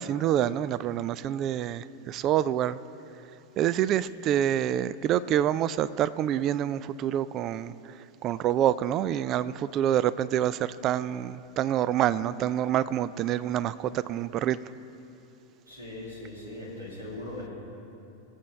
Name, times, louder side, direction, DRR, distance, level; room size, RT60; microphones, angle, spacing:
voice 1, 0.0-2.8 3.6-14.6, right 11 dB, 35° right, 18 dB, 0.3 m, -27 dB
voice 2, 15.7-17.5, left 1 dB, 80° right, -4 dB, 3.2 m, -39 dB
21.5 x 8.1 x 3.3 m, 2.8 s
figure-of-eight pair, 90°, 0 cm